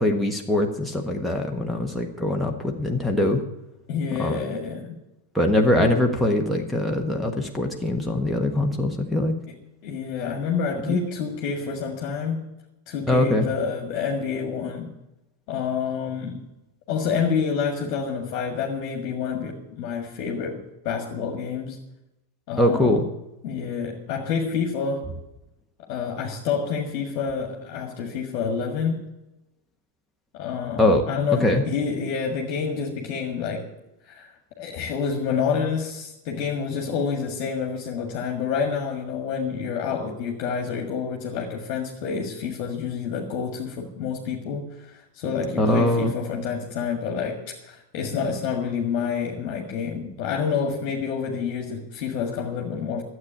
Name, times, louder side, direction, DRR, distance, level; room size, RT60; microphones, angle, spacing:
voice 1, 0.0-3.4 4.2-4.4 5.3-9.3 10.8-11.0 13.1-13.5 22.6-23.0 30.8-31.0 31.4-31.6 45.6-46.1, left 1 dB, ahead, 3 dB, 1.5 m, -22 dB
voice 2, 3.9-4.9 5.8-6.0 9.5-9.6 9.8-12.5 12.9-14.9 15.5-16.5 16.9-21.8 22.5-23.0 23.4-25.1 25.9-29.1 30.3-33.7 34.1-53.0, left 6 dB, 40° left, 2 dB, 1.8 m, -28 dB
12.5 x 8.1 x 8.6 m, 0.93 s
figure-of-eight pair, 90°, 0 cm